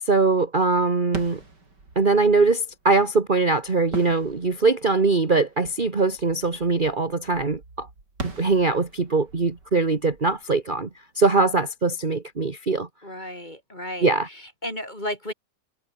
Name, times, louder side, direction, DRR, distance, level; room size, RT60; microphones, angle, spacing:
voice 1, 0.1-1.4 2.0-7.9 8.2-10.9 11.2-12.9 14.0-14.3, right 3 dB, 30° right, 1.8 m, -22 dB
sound 1, 1.0-11.6, right 3 dB, 70° right, 5.7 m, -42 dB
voice 2, 13.0-15.3, left 1 dB, 25° left, 8.0 m, -34 dB
omnidirectional pair, 1.9 m